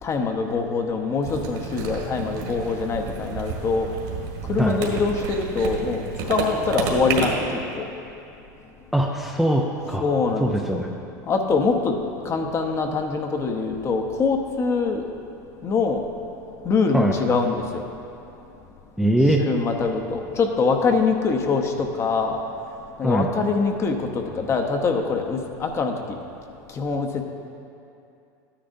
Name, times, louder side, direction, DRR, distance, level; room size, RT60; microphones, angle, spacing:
voice 1, 0.0-3.9 4.5-6.0 6.3-7.9 10.0-10.8 11.3-12.0 12.2-15.0 15.6-16.0 16.6-17.8 19.4-22.4 23.0-25.9 26.8-27.2, left 4 dB, 25° left, 4 dB, 0.8 m, -24 dB
sound 1, 1.2-7.3, right 5 dB, 60° right, 1.8 m, -30 dB
voice 2, 8.9-10.0 10.4-10.9 16.9-17.1 19.0-19.4 23.0-23.3, right 1 dB, ahead, 0 dB, 0.5 m, -21 dB
12.5 x 10.0 x 2.6 m, 2.6 s
supercardioid pair, 130°, 10 cm